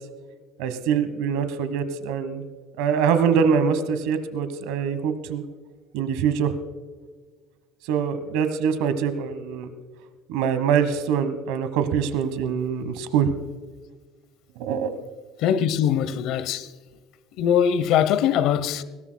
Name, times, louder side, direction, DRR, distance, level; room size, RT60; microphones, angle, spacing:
voice 1, 0.6-2.4 2.8-5.4 5.9-6.6 7.8-9.7 10.3-13.3 14.6-14.9, right 7 dB, 80° right, 1.2 m, -24 dB
voice 2, 15.4-16.7 17.4-18.8, left 9 dB, 65° left, 0.9 m, -21 dB
20.0 x 17.5 x 2.3 m
cardioid pair, 130°, 0 cm